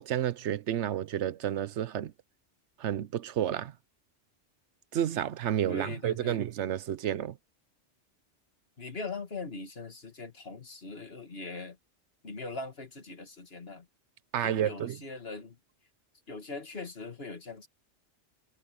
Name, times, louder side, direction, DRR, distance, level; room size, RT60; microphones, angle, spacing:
voice 1, 0.0-2.1 2.8-3.7 4.9-7.4 14.3-15.0, right 10 dB, 75° right, 1.0 m, -30 dB
voice 2, 5.7-6.4 8.8-11.8 12.2-13.9 14.4-15.6 16.3-17.7, left 3 dB, 55° left, 2.5 m, -41 dB
omnidirectional pair, 1.2 m